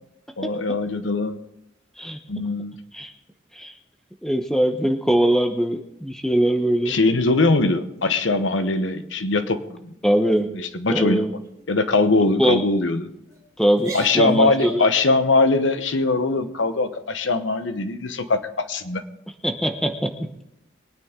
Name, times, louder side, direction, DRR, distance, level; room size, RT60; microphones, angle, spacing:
voice 1, 0.4-1.4 2.3-2.8 6.9-9.6 10.5-11.3 11.7-13.1 13.9-19.0, left 3 dB, 85° left, 10 dB, 1.0 m, -21 dB
voice 2, 4.2-7.0 10.0-10.5 10.9-11.3 12.4-12.6 13.6-14.9 19.4-20.3, right 1 dB, 5° left, 5 dB, 0.9 m, -21 dB
sound 1, 8.0-8.6 9.0-9.3 9.7-9.9 10.3-10.7 11.3-11.6 12.1-12.3 13.0-13.4 13.7-15.0, right 1 dB, 20° right, 3.7 m, -40 dB
22.5 x 9.6 x 3.8 m, 0.84 s
head